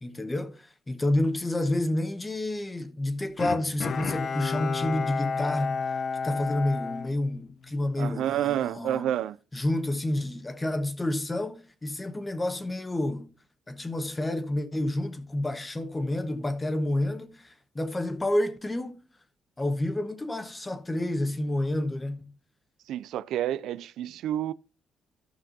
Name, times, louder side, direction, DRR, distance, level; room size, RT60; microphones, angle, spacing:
voice 1, 0.0-5.9 6.2-9.1 9.5-13.3 13.7-19.0 19.6-22.3, left 1 dB, 20° left, 1.3 m, -29 dB
Bowed string instrument, 3.4-7.9 8.3-8.4, left 5 dB, 55° left, 0.7 m, -32 dB
voice 2, 8.0-9.4 22.9-24.5, right 11 dB, 80° right, 0.3 m, -29 dB
14.5 x 5.9 x 2.7 m
cardioid pair, 90°, 0 cm